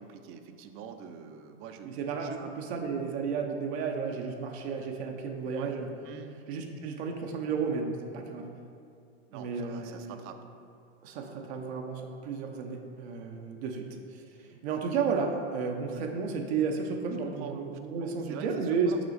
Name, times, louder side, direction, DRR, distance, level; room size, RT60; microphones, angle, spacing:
voice 1, 0.0-1.9 2.2-2.4 5.5-5.7 6.0-6.3 9.3-10.4 17.2-17.6 18.0-19.0, right 8 dB, 40° right, 8 dB, 0.5 m, -45 dB
voice 2, 1.8-5.9 6.5-8.5 9.3-10.2 11.0-14.2 14.5-18.9, right 5 dB, 70° right, 3 dB, 0.8 m, -33 dB
6.2 x 4.0 x 3.9 m, 2.4 s
supercardioid pair, 115°, 33 cm